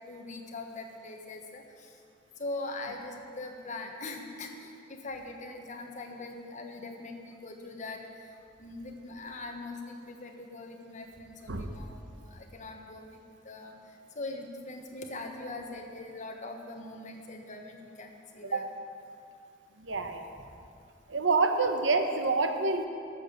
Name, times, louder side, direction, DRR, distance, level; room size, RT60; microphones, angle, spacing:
voice 1, 0.1-1.6 2.4-8.0 8.6-11.9 12.3-13.0 13.4-13.7 14.1-18.6, left 2 dB, 40° left, 2 dB, 1.3 m, -41 dB
voice 2, 11.5-11.8 18.5-18.6 19.8-20.3 21.1-22.9, right 3 dB, 80° right, 6 dB, 1.0 m, -27 dB
12.5 x 7.1 x 6.7 m, 2.4 s
head